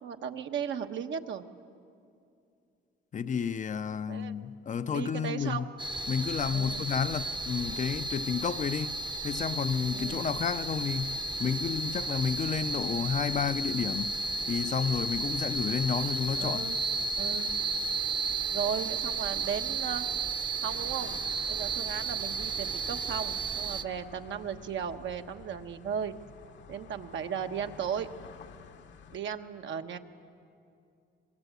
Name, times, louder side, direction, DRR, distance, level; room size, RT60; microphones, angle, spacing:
voice 1, 0.0-1.4 4.1-4.4 4.9-5.7 6.5-6.9 9.9-10.3 16.4-16.8 17.2-17.5 18.5-20.1 20.6-21.2 21.5-26.1 26.7-28.1 29.1-30.0, right 7 dB, 70° right, 1.2 m, -36 dB
voice 2, 3.1-5.7 6.1-9.0 9.2-14.2 14.5-16.7, left 6 dB, 40° left, 0.6 m, -31 dB
sound 1, 5.8-23.8, right 3 dB, 25° right, 0.8 m, -33 dB
sound 2, 20.7-29.2, left 7 dB, 65° left, 1.1 m, -50 dB
24.0 x 21.0 x 8.2 m
cardioid pair, 90°, 20 cm